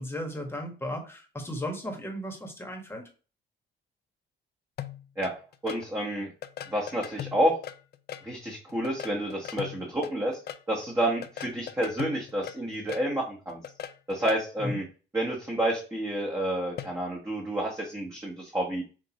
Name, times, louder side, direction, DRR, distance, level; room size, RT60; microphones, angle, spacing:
voice 1, 0.0-3.0 14.6-14.8, equal, 10° left, 2 dB, 1.4 m, -35 dB
sound 1, 4.8-5.8 6.4-8.3 8.7-10.6 11.2-13.1 13.5-14.4 16.8-17.0, left 10 dB, 55° left, 0.4 m, -39 dB
voice 2, 5.6-6.3 6.7-7.6 8.2-10.4 10.7-13.6 14.1-14.8 15.1-18.8, right 1 dB, 15° right, -3 dB, 1.3 m, -29 dB
6.0 x 2.7 x 2.9 m, 0.36 s
cardioid pair, 90°, 20 cm